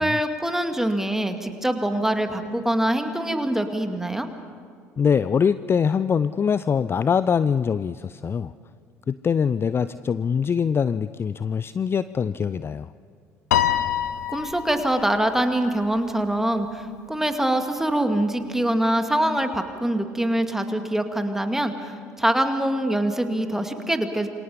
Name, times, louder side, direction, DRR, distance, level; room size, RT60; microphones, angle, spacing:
voice 1, 0.0-4.3 14.3-21.9 22.2-24.3, right 1 dB, 5° right, 6 dB, 2.2 m, -24 dB
voice 2, 5.0-8.5 9.1-12.9, left 6 dB, 25° left, 15 dB, 0.5 m, -23 dB
Piano, 13.5-16.0, left 11 dB, 75° left, 1.0 m, -26 dB
27.5 x 24.5 x 5.2 m, 2.3 s
figure-of-eight pair, 60°, 9 cm